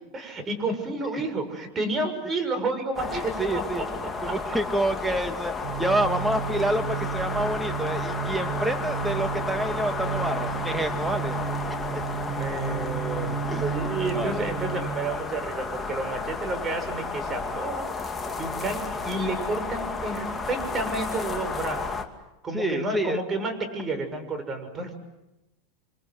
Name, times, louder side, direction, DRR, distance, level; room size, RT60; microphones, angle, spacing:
voice 1, 0.1-4.4 11.7-22.0 22.4-24.9, right 2 dB, 25° right, 7 dB, 6.7 m, -31 dB
sound 1, 2.9-22.0, left 4 dB, 15° left, 2.6 m, -32 dB
voice 2, 3.1-3.9 4.2-11.4 11.7-12.0 13.5-13.6 14.1-14.7 22.5-23.2, right 1 dB, 5° right, 7 dB, 2.4 m, -28 dB
sound 2, 5.6-15.0, right 8 dB, 60° right, 4.0 m, -33 dB
29.0 x 25.0 x 8.0 m, 0.94 s
supercardioid pair, 120°, 0 cm